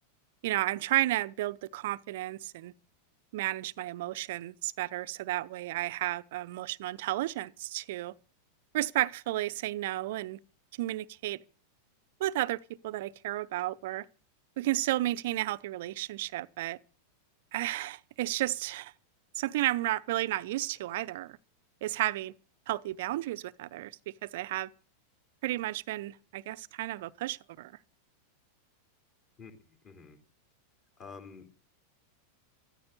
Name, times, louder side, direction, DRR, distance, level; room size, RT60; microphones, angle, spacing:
voice 1, 0.4-2.7 3.3-8.1 8.7-10.4 10.7-11.4 12.2-14.1 14.6-16.8 17.5-18.9 19.4-21.4 21.8-22.3 22.7-24.7 25.4-27.7, right 16 dB, 55° right, 0.7 m, -32 dB
voice 2, 29.4-30.2 31.0-31.5, left 5 dB, 30° left, 3.5 m, -49 dB
14.0 x 14.0 x 6.7 m
figure-of-eight pair, 90°, 0 cm